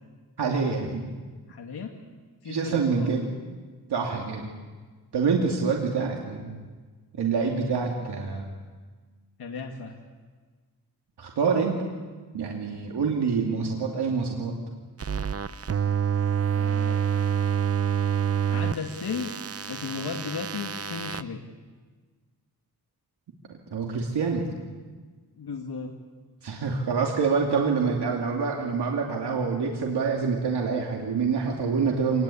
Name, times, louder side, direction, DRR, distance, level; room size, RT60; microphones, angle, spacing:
voice 1, 0.4-1.1 2.4-3.3 3.9-4.5 5.1-6.6 7.2-8.5 11.2-11.8 12.3-14.5 23.7-24.5 26.4-32.2, right 5 dB, 85° right, 0 dB, 2.8 m, -26 dB
voice 2, 1.5-1.9 2.4-3.1 9.4-10.0 16.5-17.0 18.5-19.3 19.7-21.4 25.3-25.9, left 5 dB, 70° left, 1 dB, 2.2 m, -35 dB
sound 1, 15.0-21.2, right 8 dB, 40° right, 0.8 m, -27 dB
26.0 x 20.5 x 8.6 m, 1.4 s
wide cardioid pair, 95°, 39 cm